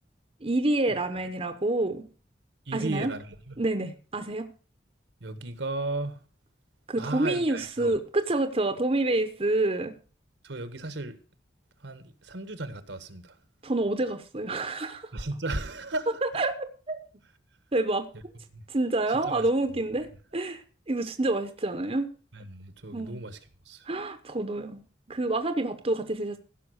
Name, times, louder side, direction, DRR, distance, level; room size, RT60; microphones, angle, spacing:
voice 1, 0.4-2.1 2.7-3.1 3.6-4.5 6.9-9.9 13.6-15.1 16.2-17.0 17.7-18.1 18.7-20.1 20.3-22.1 22.9-23.2 23.8-24.8 25.1-26.4, right 2 dB, 30° right, 1.0 m, -28 dB
voice 2, 2.7-3.6 5.2-6.2 7.0-7.9 10.4-11.1 11.8-13.4 15.1-16.1 18.5-18.6 19.1-19.5 22.3-23.4 23.6-23.9, right 2 dB, 75° right, 1.5 m, -35 dB
15.5 x 6.0 x 6.4 m
head